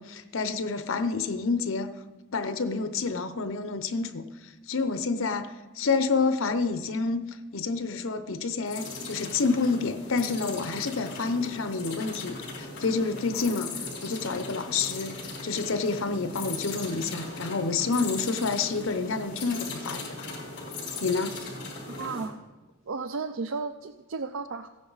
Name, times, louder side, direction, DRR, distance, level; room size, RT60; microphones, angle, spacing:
voice 1, 0.0-1.9 2.3-20.3 21.0-21.4, left 4 dB, 75° left, 10 dB, 0.8 m, -29 dB
sound 1, 8.7-22.3, left 3 dB, 55° left, 3.6 m, -38 dB
voice 2, 21.9-22.4 22.9-24.7, right 4 dB, 70° right, 9 dB, 0.5 m, -34 dB
15.0 x 9.7 x 4.0 m, 1.1 s
head